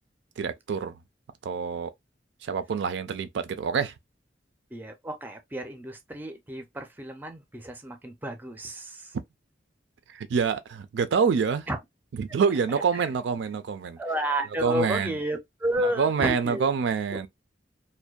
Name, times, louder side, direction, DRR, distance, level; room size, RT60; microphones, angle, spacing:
voice 1, 0.4-1.0 1.4-1.9 2.4-3.9 10.1-11.7 12.2-14.0 14.6-15.2 15.8-17.3, right 6 dB, 90° right, 0.3 m, -26 dB
voice 2, 4.7-9.1 11.7-11.8 12.9-13.0 14.0-16.7 17.1-17.2, right 1 dB, 10° right, 0.4 m, -31 dB
2.5 x 2.1 x 2.2 m
head